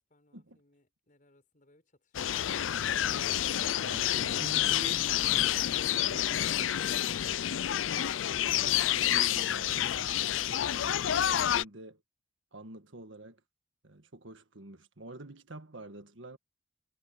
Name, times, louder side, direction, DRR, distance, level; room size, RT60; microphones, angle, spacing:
voice 1, 0.0-2.7, left 2 dB, 45° left, 6.5 m, -67 dB
sound 1, 2.1-11.6, left 11 dB, 80° left, 0.4 m, -29 dB
voice 2, 3.8-5.3 5.9-6.9 8.4-12.0 12.5-13.4 13.8-16.4, right 2 dB, 75° right, 1.6 m, -47 dB
head